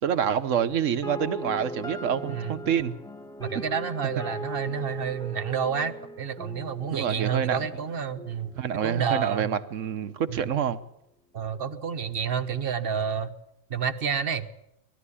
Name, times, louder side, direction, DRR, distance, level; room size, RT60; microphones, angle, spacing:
voice 1, 0.0-3.0 3.5-3.6 6.9-7.7 8.6-10.8, right 8 dB, 80° right, 12 dB, 1.3 m, -27 dB
sound 1, 1.0-9.0, equal, 5° left, 1.2 m, -39 dB
voice 2, 3.4-8.5 8.8-9.5 10.3-10.4 11.3-13.3 13.7-14.5, right 7 dB, 50° right, 10 dB, 1.2 m, -29 dB
19.5 x 13.5 x 9.9 m, 0.81 s
omnidirectional pair, 1.3 m